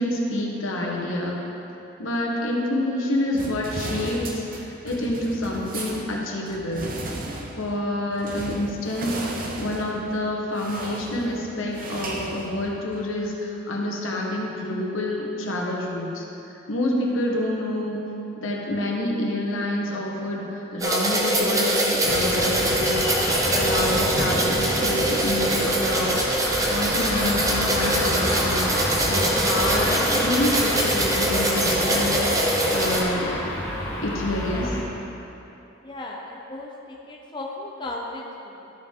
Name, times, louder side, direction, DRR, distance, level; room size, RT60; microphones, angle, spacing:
voice 1, 0.0-1.4 2.0-6.9 7.6-16.2 16.7-18.0 18.4-28.7 29.1-32.2 32.7-33.3 34.0-34.7, left 1 dB, 85° left, -2 dB, 1.3 m, -27 dB
sound 1, 3.3-13.1, right 2 dB, 45° right, 0.8 m, -36 dB
sound 2, 20.8-33.0, right 1 dB, 15° right, 0.8 m, -23 dB
sound 3, 22.0-34.8, left 1 dB, 55° left, 1.7 m, -29 dB
voice 2, 35.8-38.7, left 2 dB, 25° left, -2 dB, 0.6 m, -36 dB
12.5 x 5.4 x 3.7 m, 2.9 s
head